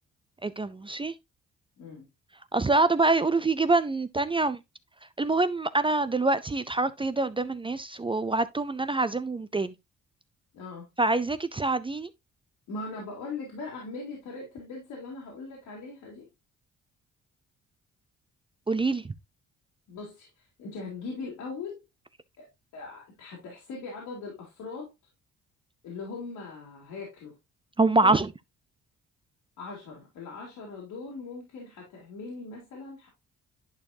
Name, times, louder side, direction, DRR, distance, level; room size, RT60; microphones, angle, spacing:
voice 1, 0.4-1.1 2.5-4.6 5.2-9.7 11.0-12.1 18.7-19.0 27.8-28.3, right 3 dB, 15° right, 0.5 m, -25 dB
voice 2, 1.8-2.1 10.5-10.9 12.7-16.3 19.9-21.8 22.4-22.5 22.7-24.9 25.8-27.3 28.0-28.2 29.6-33.1, left 3 dB, 80° left, 3.2 m, -40 dB
11.0 x 4.5 x 2.7 m
cardioid pair, 90°, 30 cm